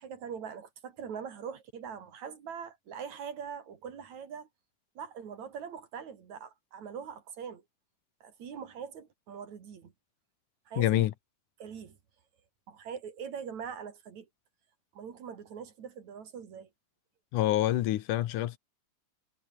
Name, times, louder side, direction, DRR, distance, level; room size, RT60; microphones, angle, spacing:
voice 1, 0.0-4.5 5.0-7.6 8.2-9.9 10.7-11.1 11.6-12.0 12.7-14.3 14.9-16.7, right 7 dB, 60° right, 3.7 m, -42 dB
voice 2, 10.8-11.1 17.3-18.6, left 14 dB, 75° left, 2.5 m, -26 dB
omnidirectional pair, 3.7 m